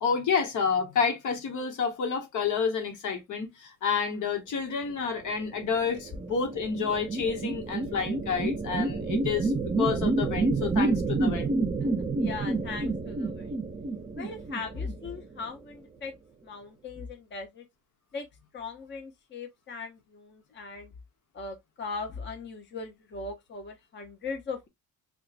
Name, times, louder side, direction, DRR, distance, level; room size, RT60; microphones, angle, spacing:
voice 1, 0.0-9.5 9.8-11.5, left 6 dB, 75° left, 1.1 m, -29 dB
sound 1, 5.6-15.4, right 3 dB, 20° right, 0.5 m, -29 dB
voice 2, 11.8-13.5 14.1-16.1 16.4-17.7 18.1-18.3 18.5-20.9 21.3-24.7, left 4 dB, 35° left, 0.7 m, -39 dB
4.4 x 2.3 x 2.5 m
cardioid pair, 130°, 31 cm